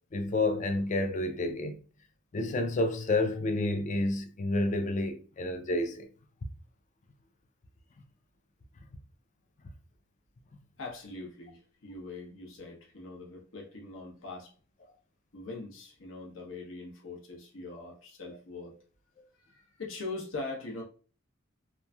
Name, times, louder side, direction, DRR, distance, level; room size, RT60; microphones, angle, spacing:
voice 1, 0.1-1.8 2.3-6.1, left 2 dB, 35° left, 0.4 m, -29 dB
voice 2, 10.8-14.5 15.3-18.8 19.3-20.8, left 3 dB, 70° left, 0.8 m, -42 dB
3.0 x 2.6 x 2.2 m
head